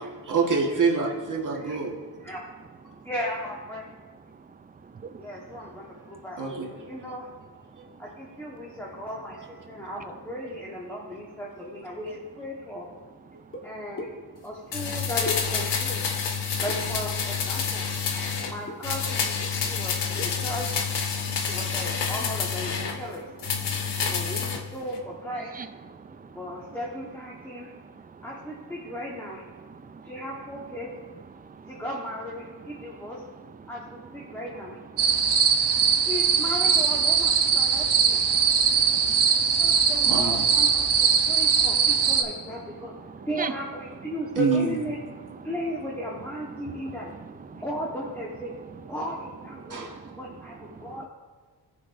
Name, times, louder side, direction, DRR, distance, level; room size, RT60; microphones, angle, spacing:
voice 1, 0.0-2.0 6.4-6.7 7.8-7.9 9.3-9.5 40.0-40.4 44.4-44.8 49.7-50.1, right 4 dB, 45° right, 0 dB, 1.6 m, -26 dB
voice 2, 3.0-3.8 5.2-7.3 8.0-12.9 13.6-14.1 14.4-16.0 16.6-17.9 18.4-20.8 21.5-23.3 24.0-25.7 26.3-27.7 28.2-29.4 30.0-30.9 31.6-33.2 33.7-34.8 36.0-38.3 39.6-42.9 43.2-45.0 45.4-47.1 47.5-48.5 48.9-51.1, equal, 5° left, -4 dB, 1.3 m, -36 dB
voice 3, 4.8-5.2 18.1-18.4 21.3-21.6 23.7-24.1 25.5-25.7 25.9-26.4 27.8-28.3 29.7-30.1 31.3-31.7 32.9-33.0 34.3-34.4 35.0-36.1 37.7-39.9 41.0-41.7 42.9-43.5 46.6-47.0 47.5-47.6 49.6-50.2 50.7-51.0, right 5 dB, 20° right, 10 dB, 0.4 m, -42 dB
sound 1, 13.5-13.6 14.0-14.1 15.2-15.9 16.7-17.2 18.7-18.8 19.1-19.2 19.4-19.8 20.2-20.5, left 1 dB, 30° left, 1.4 m, -39 dB
sound 2, 14.7-18.5 18.8-23.0 23.4-24.6 24.9-25.0, left 6 dB, 70° left, 1.1 m, -28 dB
sound 3, 35.0-42.2, right 6 dB, 65° right, 1.0 m, -21 dB
17.5 x 6.1 x 2.6 m, 1.5 s
wide cardioid pair, 120°, 43 cm